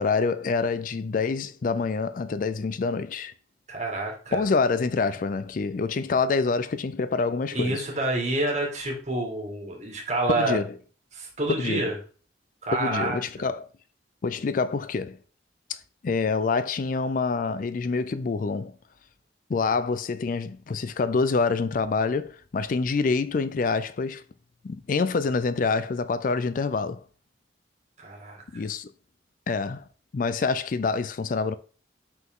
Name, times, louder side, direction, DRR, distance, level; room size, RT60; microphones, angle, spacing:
voice 1, 0.0-3.3 4.3-7.8 10.3-10.7 11.5-11.9 12.7-13.7 14.2-15.2 15.7-18.8 19.5-24.2 24.6-27.0 28.5-28.9 29.5-29.8 30.1-31.5, left 4 dB, 50° left, 0.4 m, -26 dB
voice 2, 3.7-4.4 7.5-10.6 11.1-11.9 12.6-13.5 19.6-19.7 28.0-28.6, right 2 dB, 40° right, 2.2 m, -28 dB
5.8 x 5.8 x 3.7 m
head